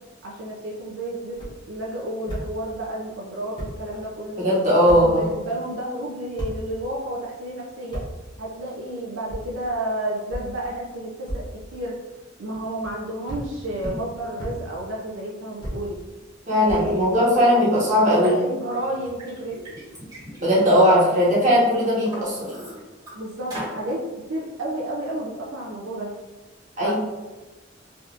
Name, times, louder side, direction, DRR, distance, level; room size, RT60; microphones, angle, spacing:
voice 1, 0.2-1.4 1.7-4.5 4.9-8.0 8.4-12.0 12.4-16.0 16.6-17.6 18.2-19.6 20.7-20.8 21.1-21.2 23.1-24.0 24.3-26.1 26.8-26.9, right 1 dB, 75° right, -4 dB, 0.5 m, -31 dB
sound 1, 1.3-1.5 2.3-2.4 3.2-3.3 3.6-3.7 4.9-5.0 6.4-6.5 7.9-8.1 9.3-9.4 10.3-10.4 11.3-11.4 12.5-12.9 13.3-13.4 13.8-14.0 14.4-14.5 15.6-15.8 16.7-17.4, equal, 25° left, 1.0 m, -32 dB
voice 2, 4.4-5.3 16.5-18.4 20.4-22.5 26.8-26.9, equal, 40° right, -7 dB, 1.1 m, -18 dB
Liquid, 18.2-18.3 18.9-21.3 21.7-23.1 23.5-23.8, equal, 20° right, 1.2 m, -39 dB
3.4 x 2.6 x 2.4 m, 1.2 s
head